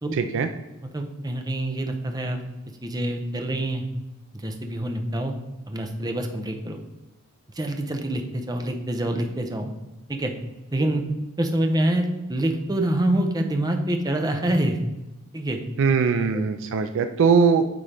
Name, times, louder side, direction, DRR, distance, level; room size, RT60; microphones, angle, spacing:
voice 1, 0.1-0.5 15.8-17.7, right 5 dB, 60° right, 8 dB, 0.4 m, -20 dB
voice 2, 0.9-2.4 2.8-3.8 4.4-5.3 5.7-6.8 7.5-9.7 10.1-10.3 10.7-11.1 11.4-14.8 15.3-15.6 16.3-16.4, right 1 dB, 20° right, 4 dB, 0.6 m, -26 dB
9.6 x 3.7 x 3.3 m, 1.0 s
head